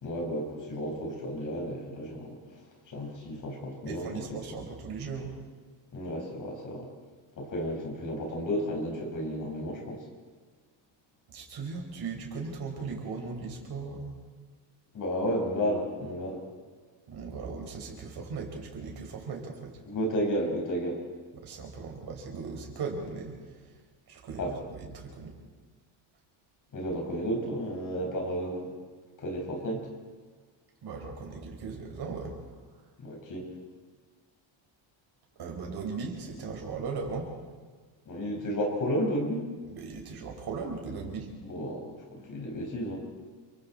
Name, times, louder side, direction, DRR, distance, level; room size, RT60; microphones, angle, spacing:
voice 1, 0.0-2.4 2.9-4.2 5.9-6.9 7.4-10.0 14.9-16.4 19.9-21.0 24.4-24.6 26.7-28.7 29.2-29.9 33.0-33.5 38.1-39.5 41.4-43.0, equal, 40° left, 0 dB, 5.5 m, -32 dB
voice 2, 3.8-5.3 11.3-14.2 17.1-19.8 21.3-23.7 24.1-25.3 30.8-32.4 35.4-37.3 39.7-41.3, right 4 dB, 50° right, 1 dB, 5.4 m, -38 dB
30.0 x 24.0 x 4.4 m, 1.5 s
cardioid pair, 165°, 48 cm